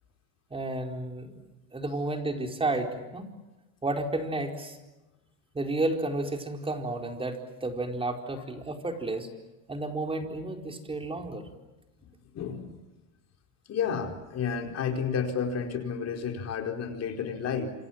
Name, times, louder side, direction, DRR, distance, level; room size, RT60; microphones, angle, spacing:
voice 1, 0.5-1.4 1.7-3.3 3.8-4.8 5.5-9.3 9.7-11.5, right 2 dB, 15° right, 4 dB, 4.4 m, -32 dB
voice 2, 12.3-12.7 13.7-17.7, left 6 dB, 35° left, 4 dB, 4.7 m, -31 dB
28.5 x 27.5 x 7.5 m, 1.1 s
supercardioid pair, 125°, 42 cm